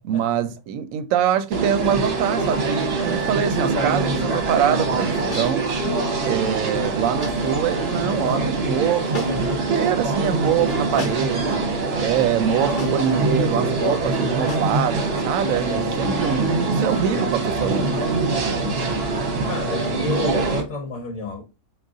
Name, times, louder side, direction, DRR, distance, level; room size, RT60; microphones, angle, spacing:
voice 1, 0.0-5.6 6.2-11.7 12.0-18.1, right 9 dB, 75° right, 0.9 m, -24 dB
sound 1, 1.5-20.6, right 3 dB, 50° right, 1.0 m, -23 dB
sound 2, 5.3-5.6 7.2-7.5 9.1-9.6 11.0-11.4 12.8-13.1 14.5-14.8, left 3 dB, 40° left, 0.9 m, -35 dB
voice 2, 18.5-21.4, left 3 dB, 65° left, 1.0 m, -32 dB
3.9 x 2.4 x 3.6 m
omnidirectional pair, 1.5 m